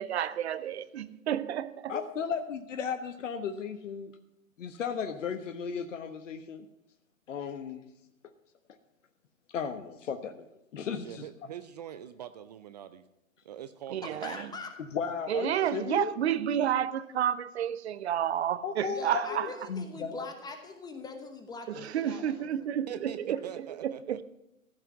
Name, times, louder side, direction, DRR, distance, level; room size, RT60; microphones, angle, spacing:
voice 1, 0.0-2.0 13.9-14.5 15.3-19.5 21.7-24.2, right 10 dB, 50° right, 0.9 m, -31 dB
voice 2, 1.9-4.1 4.6-6.6 7.3-7.8 9.5-10.5 10.7-11.2 14.4-14.5 14.9-16.1 18.6-20.3, left 6 dB, 65° left, 1.2 m, -35 dB
voice 3, 11.0-13.1 13.4-14.6 22.9-24.2, right 10 dB, 30° right, 0.5 m, -44 dB
voice 4, 14.0-14.7 18.9-22.7, left 3 dB, 10° left, 1.0 m, -42 dB
15.5 x 5.9 x 9.7 m
hypercardioid pair, 130°, 41 cm